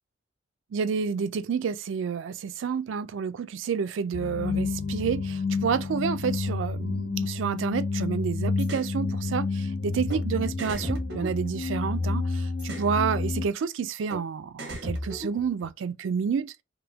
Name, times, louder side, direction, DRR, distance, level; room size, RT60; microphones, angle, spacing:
voice 1, 0.7-16.6, right 6 dB, 85° right, 0.4 m, -29 dB
sound 1, 4.1-13.5, left 4 dB, 60° left, 0.4 m, -30 dB
sound 2, 8.6-8.9 10.1-10.2 10.6-12.0 12.6-12.9 14.1-14.2 14.6-15.7, equal, 55° right, 1.3 m, -36 dB
3.5 x 2.1 x 2.8 m
head